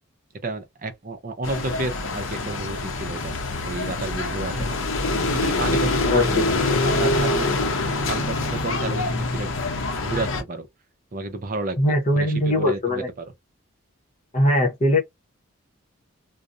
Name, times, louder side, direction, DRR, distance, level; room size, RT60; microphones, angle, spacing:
voice 1, 0.4-3.4 3.6-7.5 8.0-9.5 10.0-10.7 11.1-11.8 12.1-13.3, right 2 dB, 40° right, 0.5 m, -31 dB
sound 1, 1.4-10.4, left 2 dB, 65° left, 0.6 m, -25 dB
voice 2, 6.0-6.4 11.8-13.1 14.3-15.0, left 1 dB, 30° left, 0.7 m, -21 dB
2.4 x 2.0 x 2.5 m
head